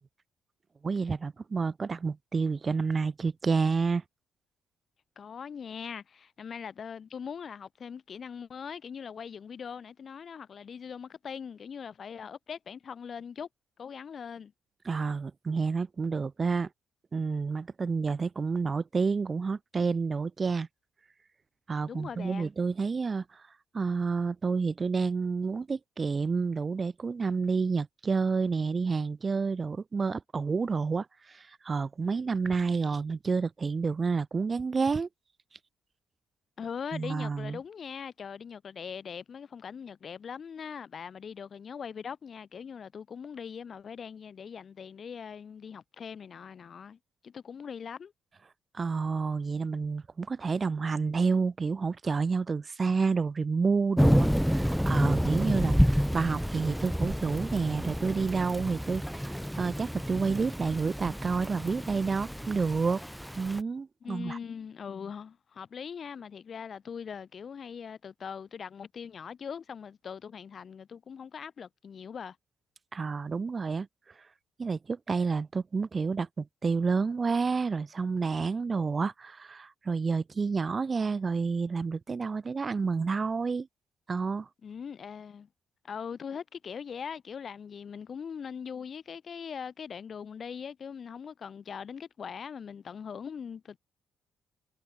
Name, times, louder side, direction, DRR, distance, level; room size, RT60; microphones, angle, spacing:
voice 1, 0.8-4.0 14.9-16.7 17.1-20.7 21.7-23.2 23.7-35.1 36.9-37.6 48.7-55.7 56.1-63.0 63.4-64.4 72.9-73.9 74.6-83.7 84.1-84.5, right 4 dB, 35° right, 4.3 m, -29 dB
voice 2, 5.2-13.5 13.8-14.5 21.9-22.5 36.6-47.0 47.2-48.1 55.5-55.8 64.0-72.4 84.6-85.5 85.8-93.8, left 7 dB, 50° left, 7.7 m, -41 dB
Thunder / Rain, 54.0-63.6, equal, ahead, 4.4 m, -29 dB
cardioid pair, 90°, 0 cm